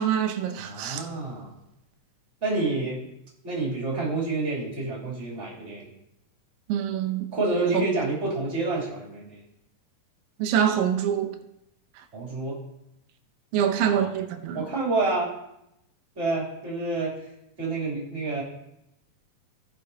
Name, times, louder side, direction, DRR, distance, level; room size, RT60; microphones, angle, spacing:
voice 1, 0.0-1.1 6.7-7.3 7.7-7.9 10.4-11.4 13.5-14.7, right 9 dB, 85° right, 2.5 m, -25 dB
voice 2, 0.6-1.5 2.4-3.0 3.4-5.9 7.3-9.4 12.1-12.6 13.6-14.1 14.5-15.3 16.1-17.1 17.6-18.4, right 3 dB, 20° right, 2.7 m, -28 dB
16.5 x 6.6 x 2.8 m
omnidirectional pair, 4.0 m